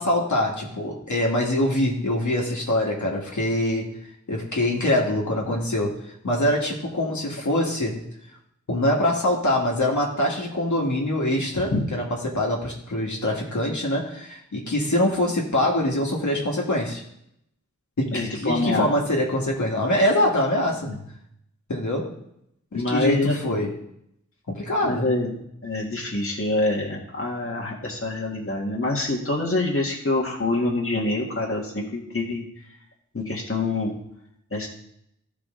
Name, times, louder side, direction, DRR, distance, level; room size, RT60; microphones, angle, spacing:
voice 1, 0.0-3.9 4.3-6.0 6.2-8.0 8.7-17.0 18.0-20.9 21.7-22.1 22.7-23.7 24.5-25.1, left 1 dB, 70° left, -2 dB, 1.9 m, -24 dB
voice 2, 18.1-18.9 20.9-21.0 22.7-23.4 24.8-32.4 33.1-33.9 34.5-34.7, left 2 dB, 45° left, -2 dB, 1.8 m, -25 dB
14.0 x 5.0 x 3.8 m, 0.75 s
wide cardioid pair, 75°, 30 cm